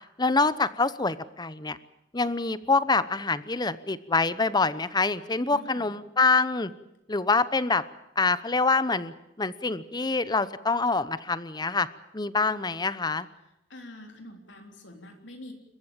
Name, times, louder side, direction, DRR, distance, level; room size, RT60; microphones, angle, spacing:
voice 1, 0.2-1.8 2.1-6.7 7.1-7.8 8.2-11.9 12.1-13.3, left 3 dB, 20° left, 15 dB, 0.9 m, -25 dB
voice 2, 5.5-5.9 13.7-15.5, left 1 dB, 65° left, 3 dB, 3.6 m, -45 dB
28.5 x 15.0 x 8.9 m, 0.88 s
head